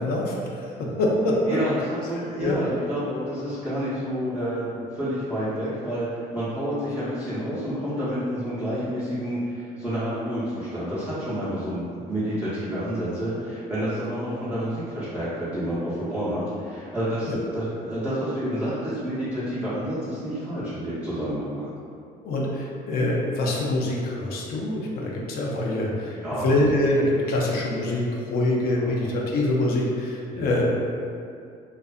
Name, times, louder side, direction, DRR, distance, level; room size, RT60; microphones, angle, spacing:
voice 1, 0.0-1.4 2.4-2.6 17.2-17.4 22.2-26.1 26.4-30.6, left 1 dB, 65° left, -3 dB, 0.5 m, -25 dB
voice 2, 1.4-21.7 26.1-26.5 28.8-28.9 30.3-30.6, equal, 10° right, -14 dB, 0.8 m, -29 dB
2.5 x 2.4 x 2.3 m, 2.4 s
cardioid pair, 110°, 17 cm